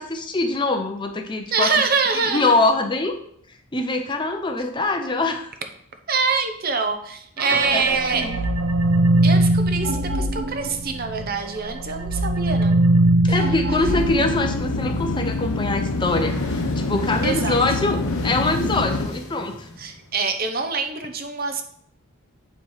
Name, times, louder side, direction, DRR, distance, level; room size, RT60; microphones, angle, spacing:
voice 1, 0.0-1.7 2.1-3.1 3.7-5.5 7.7-7.9 8.1-8.4 13.2-19.7, left 2 dB, 20° left, 5 dB, 0.6 m, -24 dB
voice 2, 1.5-2.6 6.1-8.3 9.2-12.8 13.3-13.4 17.2-17.6 19.8-21.6, right 4 dB, 45° right, 6 dB, 0.7 m, -25 dB
sound 1, 7.4-11.3 11.6-15.0, right 1 dB, 90° right, 0.9 m, -21 dB
sound 2, 13.9-19.1, left 3 dB, 85° left, 0.6 m, -26 dB
sound 3, 15.8-20.3, left 1 dB, 60° left, 1.5 m, -33 dB
8.6 x 3.2 x 5.6 m, 0.65 s
head